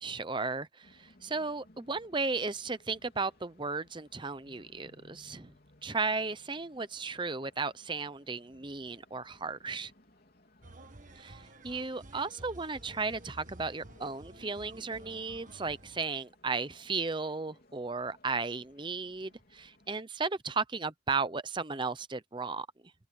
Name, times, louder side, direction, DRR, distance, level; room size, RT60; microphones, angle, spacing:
voice 1, 0.0-5.5 5.8-9.9 11.2-22.7, right 4 dB, 25° right, 0.7 m, -35 dB
sound 1, 0.8-20.0, left 1 dB, 45° left, 3.8 m, -63 dB
sound 2, 10.6-16.0, right 2 dB, 40° right, 1.8 m, -52 dB
open air
head